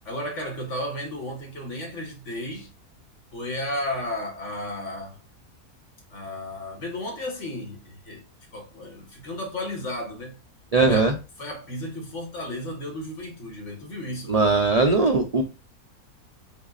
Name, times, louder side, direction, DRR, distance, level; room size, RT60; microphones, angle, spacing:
voice 1, 0.1-2.7 3.3-5.2 6.1-8.2 8.5-10.4 10.9-11.1 11.4-14.4, left 1 dB, 50° left, 1.8 m, -33 dB
voice 2, 10.7-11.1 14.3-15.4, right 3 dB, 55° right, 0.4 m, -19 dB
5.5 x 4.0 x 2.4 m
omnidirectional pair, 1.6 m